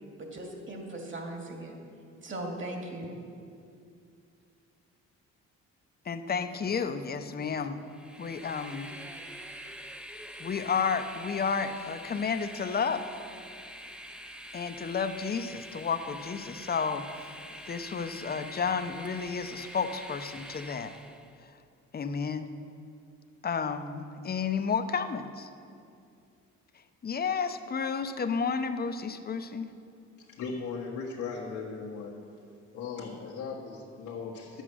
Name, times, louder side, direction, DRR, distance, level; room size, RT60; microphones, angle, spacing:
voice 1, 0.2-1.7 2.2-3.1, right 1 dB, 40° right, 1 dB, 2.3 m, -38 dB
voice 2, 6.1-7.8 8.2-8.9 10.4-13.0 14.5-17.3 17.7-20.9 21.9-22.5 23.4-25.5 27.0-29.7, left 5 dB, 30° left, 9 dB, 0.7 m, -31 dB
Train, 7.8-21.3, equal, 5° right, 0.7 m, -45 dB
voice 3, 30.2-32.2 32.7-34.6, left 5 dB, 90° left, -5 dB, 1.5 m, -38 dB
11.0 x 8.2 x 6.2 m, 2.4 s
cardioid pair, 90°, 30 cm